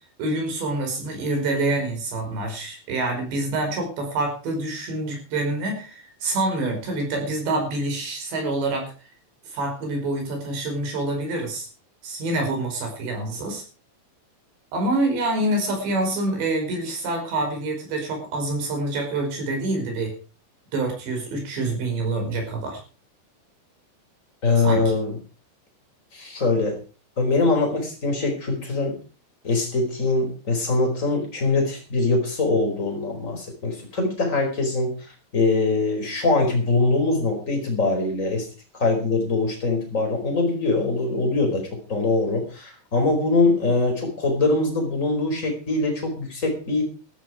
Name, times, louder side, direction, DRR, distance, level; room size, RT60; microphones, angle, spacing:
voice 1, 0.2-8.9 9.5-11.7 12.0-13.6 14.7-20.1 20.7-22.8 24.6-24.8, right 2 dB, 60° right, 3 dB, 7.2 m, -26 dB
voice 2, 24.4-25.2 26.1-26.8 27.2-28.9 29.4-34.9 35.3-38.5 38.7-46.9, left 3 dB, 15° left, 2 dB, 4.5 m, -23 dB
14.5 x 13.5 x 4.9 m, 0.37 s
omnidirectional pair, 5.7 m